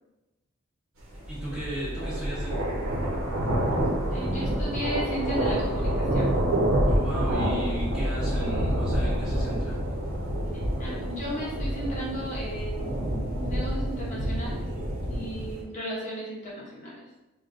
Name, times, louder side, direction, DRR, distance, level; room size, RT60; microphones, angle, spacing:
sound 1, 1.1-15.6, right 1 dB, 70° right, 0.9 m, -28 dB
voice 1, 1.3-2.6 6.9-9.8, equal, 5° right, -10 dB, 1.3 m, -35 dB
voice 2, 4.1-6.3 10.5-14.6 15.1-17.0, equal, 35° left, -5 dB, 0.7 m, -35 dB
5.0 x 2.3 x 2.5 m, 1.0 s
head